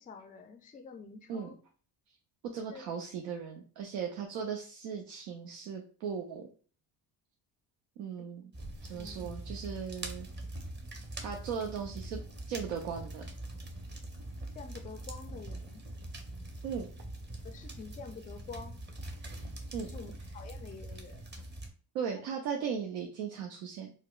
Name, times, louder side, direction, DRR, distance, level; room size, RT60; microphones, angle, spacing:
voice 1, 0.0-1.6 2.7-2.8 8.2-8.3 8.9-9.3 14.5-15.9 17.4-18.8 19.8-21.3 22.1-22.3, left 5 dB, 20° left, 0.3 m, -48 dB
voice 2, 2.5-6.5 8.0-8.5 8.8-10.3 11.2-12.2 12.5-13.2 16.6-16.9 19.7-19.9 21.9-23.9, right 7 dB, 80° right, 0.6 m, -37 dB
sound 1, 8.5-21.7, right 1 dB, 20° right, 0.7 m, -43 dB
4.2 x 2.1 x 2.3 m
supercardioid pair, 65°, 49 cm